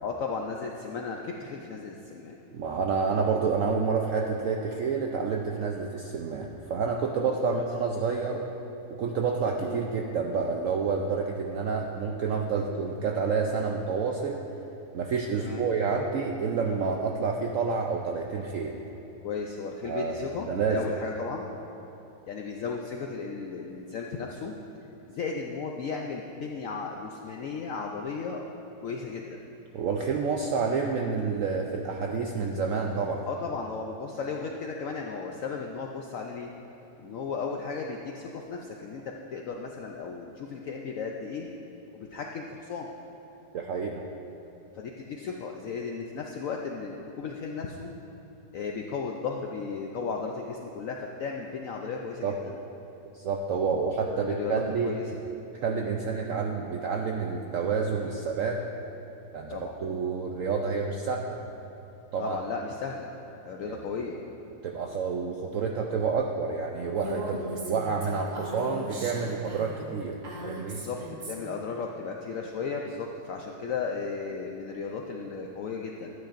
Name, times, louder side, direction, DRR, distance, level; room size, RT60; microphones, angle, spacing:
voice 1, 0.0-2.4 7.2-7.5 9.6-9.8 15.4-15.6 19.2-21.5 22.3-24.5 25.1-28.4 28.8-29.4 33.3-36.5 37.0-39.0 39.3-41.5 41.9-42.9 44.7-47.9 48.5-52.5 54.1-55.2 59.5-59.7 62.2-63.1 63.4-64.2 70.7-71.0 71.3-76.1, left 5 dB, 75° left, 1 dB, 0.7 m, -35 dB
voice 2, 2.5-8.4 8.9-14.4 14.9-18.7 19.8-20.9 29.7-33.3 43.5-44.0 52.2-52.3 53.1-54.9 55.6-58.6 59.3-59.5 59.8-61.4 62.1-62.4 63.6-63.8 64.6-70.8, right 5 dB, 75° right, 1 dB, 0.7 m, -29 dB
Female speech woman speaking, 67.0-71.6, equal, 45° right, 1.3 m, -38 dB
13.0 x 9.2 x 2.5 m, 3.0 s
omnidirectional pair, 1.9 m